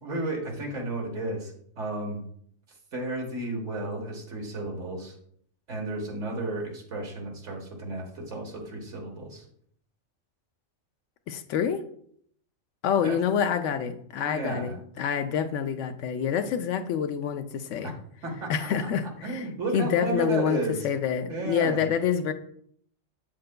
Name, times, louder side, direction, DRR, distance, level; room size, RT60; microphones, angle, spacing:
voice 1, 0.0-2.2 2.9-5.1 5.7-9.4 13.0-13.2 14.2-14.8 17.8-17.9 18.2-18.9 19.2-20.8 21.3-21.9, right 2 dB, 80° right, 1 dB, 1.7 m, -33 dB
voice 2, 11.3-11.8 12.8-17.9 18.5-19.4 19.7-20.6 20.8-22.3, left 8 dB, 85° left, 8 dB, 1.0 m, -27 dB
7.6 x 7.5 x 2.2 m, 0.64 s
omnidirectional pair, 1.2 m